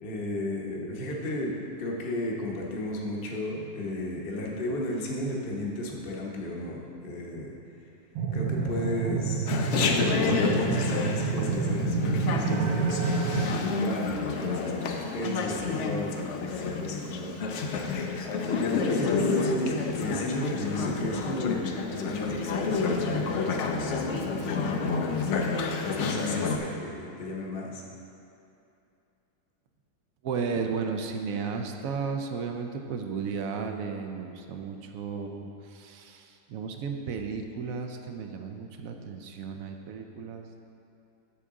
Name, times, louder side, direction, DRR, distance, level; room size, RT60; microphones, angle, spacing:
voice 1, 0.0-7.5 8.3-9.5 10.0-17.9 18.6-25.1 25.8-27.8, left 1 dB, 40° left, -2 dB, 1.0 m, -34 dB
sound 1, 8.2-13.5, right 5 dB, 90° right, 1.3 m, -28 dB
Chatter, 9.5-26.6, left 4 dB, 70° left, 0.7 m, -30 dB
voice 2, 30.2-40.6, right 5 dB, 70° right, 5 dB, 0.9 m, -34 dB
9.8 x 7.0 x 3.7 m, 2.7 s
omnidirectional pair, 1.9 m